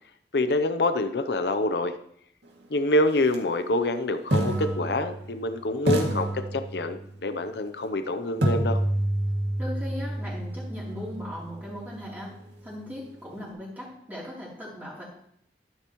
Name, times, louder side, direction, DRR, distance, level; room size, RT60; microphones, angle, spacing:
voice 1, 0.3-1.9 2.7-8.8, left 2 dB, 70° left, 9 dB, 0.7 m, -26 dB
sound 1, 3.2-3.3 4.3-5.5 5.9-7.1 8.4-12.3, right 1 dB, 90° right, 2.3 m, -28 dB
voice 2, 9.6-12.3 12.6-15.1, left 1 dB, 10° right, -7 dB, 3.2 m, -38 dB
13.5 x 11.5 x 3.1 m, 0.70 s
head